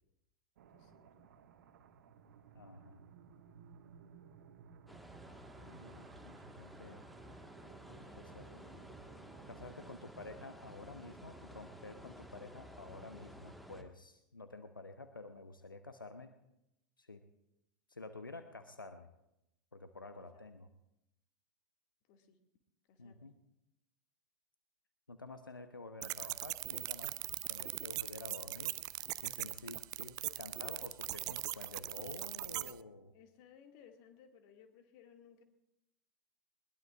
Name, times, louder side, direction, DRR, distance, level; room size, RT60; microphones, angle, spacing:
sound 1, 0.6-9.9, right 7 dB, 60° right, 1.3 m, -59 dB
voice 1, 0.7-1.3 20.3-20.4 22.1-22.4 22.9-23.3 33.1-35.4, left 7 dB, 45° left, 4 dB, 2.3 m, -61 dB
voice 2, 2.5-3.0 5.6-7.1 7.9-8.8 9.5-16.3 17.0-17.2 17.9-19.1 19.7-20.7 23.0-23.4 25.1-27.2 27.5-28.8 29.2-33.1, left 3 dB, 85° left, 9 dB, 0.9 m, -50 dB
sound 2, 4.9-13.8, equal, ahead, 1.7 m, -53 dB
sound 3, 26.0-32.7, right 18 dB, 35° right, 0.5 m, -40 dB
21.5 x 21.0 x 2.5 m, 0.87 s
figure-of-eight pair, 90°, 11 cm